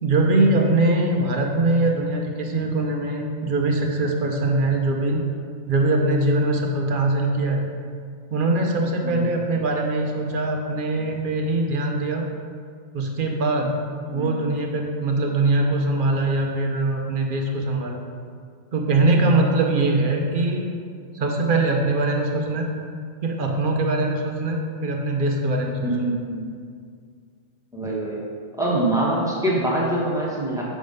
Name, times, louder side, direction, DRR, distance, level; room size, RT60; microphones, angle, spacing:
voice 1, 0.0-5.2 5.7-7.6 8.3-12.2 12.9-13.7 14.1-18.0 18.7-20.7 21.1-22.7 23.2-26.1, right 2 dB, 50° right, 1 dB, 0.7 m, -22 dB
voice 2, 14.1-14.5 25.8-26.4 27.7-28.2 28.6-30.6, right 1 dB, 5° right, -6 dB, 1.0 m, -24 dB
6.2 x 3.5 x 5.2 m, 2.1 s
omnidirectional pair, 1.4 m